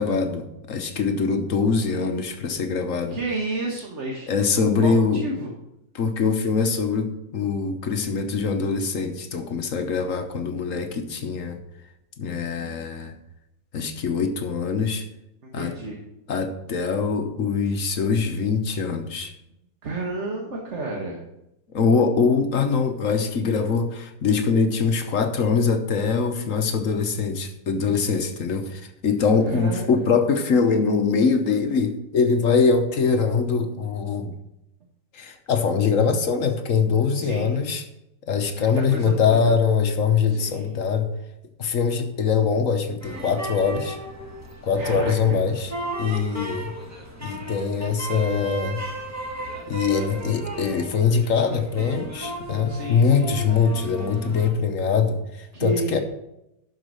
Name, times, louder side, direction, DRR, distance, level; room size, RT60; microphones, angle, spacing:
voice 1, 0.0-3.2 4.3-5.2 5.9-11.6 12.2-13.1 13.7-15.1 15.5-15.8 16.3-19.3 21.7-34.3 35.1-37.8 38.3-41.1 41.6-44.0 44.6-45.7 46.0-46.7 47.2-48.8 49.7-56.0, left 5 dB, 55° left, 7 dB, 1.1 m, -23 dB
voice 2, 1.8-2.1 3.1-5.5 15.4-16.0 19.8-21.2 29.4-29.9 37.1-37.6 38.6-39.5 40.3-40.8 44.8-45.4 52.7-53.4 55.5-56.0, right 2 dB, 40° right, -1 dB, 1.5 m, -31 dB
sound 1, 43.0-54.5, right 1 dB, 10° right, 1.6 m, -35 dB
12.0 x 5.2 x 6.3 m, 0.86 s
omnidirectional pair, 1.9 m